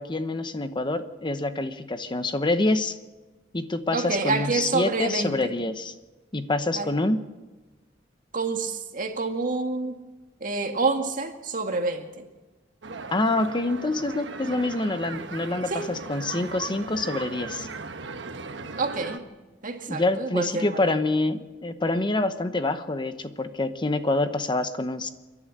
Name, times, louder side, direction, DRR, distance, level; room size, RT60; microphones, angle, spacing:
voice 1, 0.0-3.0 3.5-5.9 6.3-7.2 13.1-17.7 19.9-25.1, left 2 dB, 25° left, 9 dB, 0.9 m, -26 dB
voice 2, 3.9-5.5 6.8-6.9 8.3-10.0 10.4-12.2 15.7-15.9 18.8-19.2 19.6-21.0, right 3 dB, 45° right, 5 dB, 2.0 m, -28 dB
sound 1, 12.8-19.2, right 4 dB, 70° right, 1.2 m, -38 dB
29.0 x 11.0 x 8.7 m, 1.2 s
head